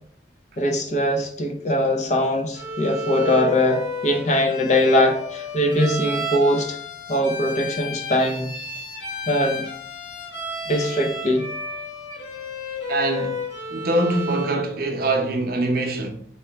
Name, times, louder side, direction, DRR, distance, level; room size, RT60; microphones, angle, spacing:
voice 1, 0.6-6.8 7.1-8.5 9.3-9.6 10.7-11.5, left 1 dB, 40° left, 0.6 m, -21 dB
Bowed string instrument, 2.5-14.7, left 2 dB, 85° left, 1.2 m, -32 dB
voice 2, 4.1-4.6 12.9-13.4 13.7-16.1, right 2 dB, 55° right, 0.7 m, -24 dB
3.1 x 2.9 x 4.4 m
head